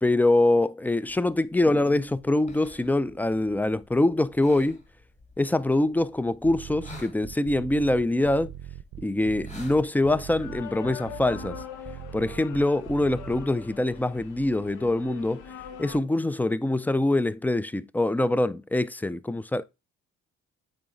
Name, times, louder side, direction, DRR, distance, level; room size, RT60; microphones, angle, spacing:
voice 1, 0.0-4.8 5.4-8.5 9.0-11.6 12.1-15.4 15.8-19.6, left 2 dB, 5° left, 0.3 m, -24 dB
sound 1, 1.1-10.1, left 2 dB, 20° left, 1.7 m, -51 dB
sound 2, 6.4-13.4, right 12 dB, 65° right, 0.6 m, -41 dB
sound 3, 10.0-16.0, left 8 dB, 80° left, 0.9 m, -43 dB
8.7 x 3.3 x 3.8 m
cardioid pair, 90°, 30 cm